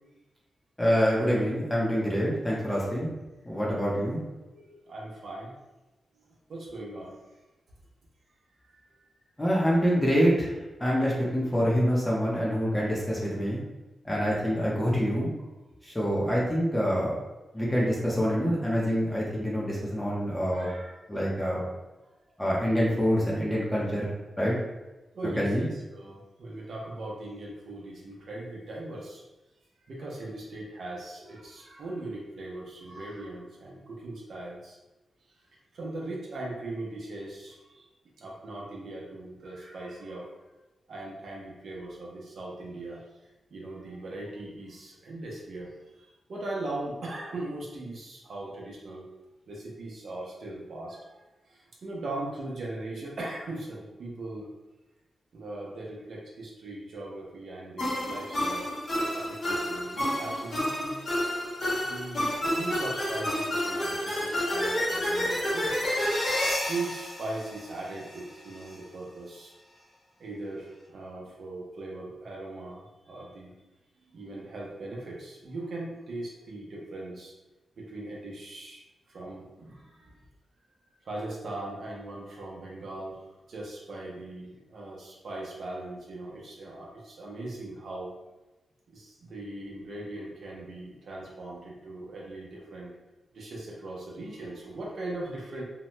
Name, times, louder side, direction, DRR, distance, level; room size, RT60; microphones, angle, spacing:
voice 1, 0.8-3.1 3.5-4.2 9.4-10.5 10.8-13.6 14.0-15.3 15.8-17.1 17.5-20.7 21.1-21.6 22.4-24.5 25.4-25.6, equal, 10° left, -5 dB, 0.6 m, -26 dB
voice 2, 4.4-5.5 6.5-7.2 8.7-8.8 20.5-21.1 25.1-29.2 29.8-34.8 35.3-35.4 35.7-37.9 38.2-40.3 40.9-43.2 43.5-45.7 46.0-49.0 49.5-54.5 55.3-58.7 59.1-61.0 61.8-65.9 66.7-69.5 70.2-73.5 74.1-77.3 77.8-80.2 81.0-88.1 88.9-92.9 93.3-95.6, right 2 dB, 70° right, -4 dB, 0.6 m, -39 dB
sound 1, 57.8-68.2, left 1 dB, 60° left, 1.1 m, -30 dB
2.8 x 2.1 x 3.0 m, 1.1 s
cardioid pair, 90°, 0 cm